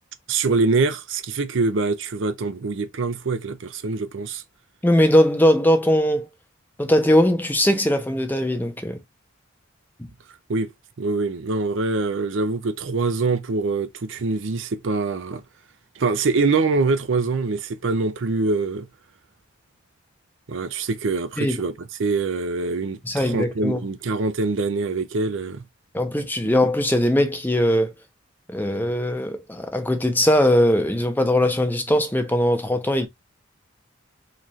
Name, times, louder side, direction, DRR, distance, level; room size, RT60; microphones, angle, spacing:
voice 1, 0.3-4.4 10.5-10.7 11.0-15.4 16.0-18.9 20.5-25.6 26.4-26.5, right 3 dB, 65° right, 0.5 m, -24 dB
voice 2, 4.8-6.3 6.8-9.0 21.4-21.6 23.0-23.8 25.9-27.9 28.5-33.1, left 1 dB, 10° left, 0.6 m, -20 dB
4.0 x 2.4 x 3.0 m
head